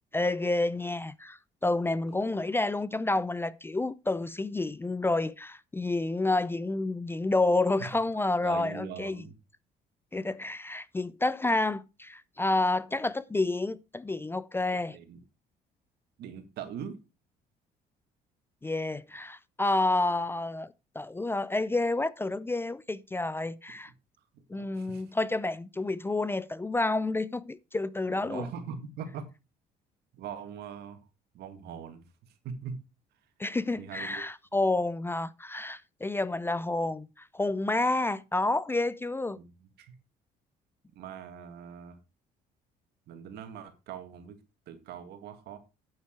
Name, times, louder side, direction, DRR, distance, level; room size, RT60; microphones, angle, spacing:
voice 1, 0.1-9.2 10.1-15.0 18.6-23.9 24.5-28.5 33.4-39.4, left 2 dB, 15° left, 0.4 m, -29 dB
voice 2, 8.4-9.3 14.9-15.2 16.2-17.0 23.9-24.0 24.5-25.0 28.1-29.3 30.1-31.0 31.3-32.8 33.7-34.2 39.3-39.5 39.8-40.0 40.9-42.0 43.1-44.4 44.7-45.6, right 7 dB, 75° right, 2.1 m, -42 dB
8.9 x 8.0 x 4.6 m
cardioid pair, 110°, 17 cm